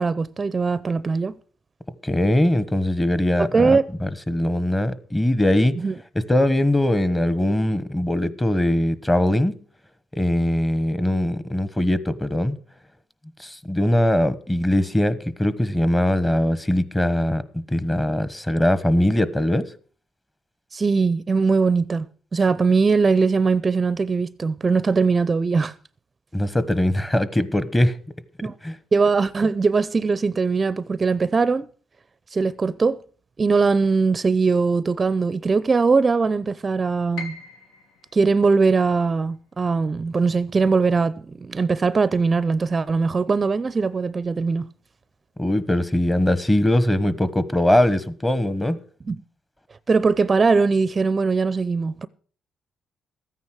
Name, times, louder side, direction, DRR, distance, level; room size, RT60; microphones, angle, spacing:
voice 1, 0.0-1.3 3.4-3.8 5.8-5.9 20.7-22.1 22.3-25.7 28.4-28.5 28.9-31.7 32.3-33.0 33.4-37.4 38.1-44.7 49.1-49.2 49.9-52.1, right 4 dB, 30° right, 0.5 m, -20 dB
voice 2, 2.0-5.7 6.1-9.6 10.1-12.6 13.4-19.7 26.3-28.0 28.6-28.7 45.4-48.8, left 1 dB, 15° left, 1.2 m, -21 dB
Piano, 37.2-43.1 43.4-44.6 45.0-45.1 45.8-46.1, left 4 dB, 80° left, 1.6 m, -45 dB
14.0 x 9.6 x 6.2 m
cardioid pair, 90°, 0 cm